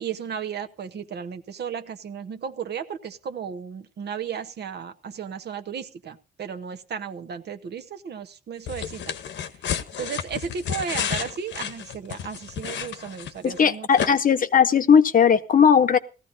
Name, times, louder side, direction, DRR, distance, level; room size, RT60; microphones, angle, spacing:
voice 1, 0.0-9.2 10.0-14.2, right 7 dB, 60° right, 8 dB, 1.1 m, -34 dB
sound 1, 8.7-13.6 14.0-14.1, left 8 dB, 65° left, 1.0 m, -31 dB
voice 2, 13.4-16.0, left 7 dB, 45° left, 10 dB, 0.9 m, -18 dB
17.5 x 14.0 x 2.7 m, 0.31 s
cardioid pair, 90°, 20 cm